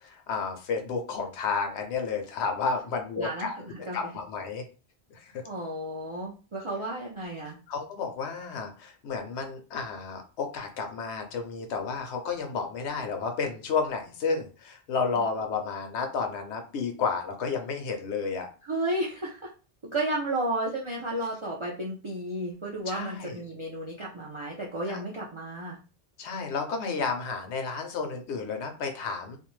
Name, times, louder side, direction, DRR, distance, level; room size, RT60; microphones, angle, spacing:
voice 1, 0.0-3.5 3.9-4.6 5.2-5.4 7.7-18.5 22.9-23.4 24.9-25.0 26.2-29.4, left 5 dB, 80° left, 4 dB, 0.9 m, -31 dB
voice 2, 3.2-4.0 5.4-7.6 18.6-19.5 19.9-25.8, right 1 dB, 55° right, -4 dB, 0.3 m, -32 dB
2.5 x 2.1 x 3.0 m, 0.35 s
omnidirectional pair, 1.1 m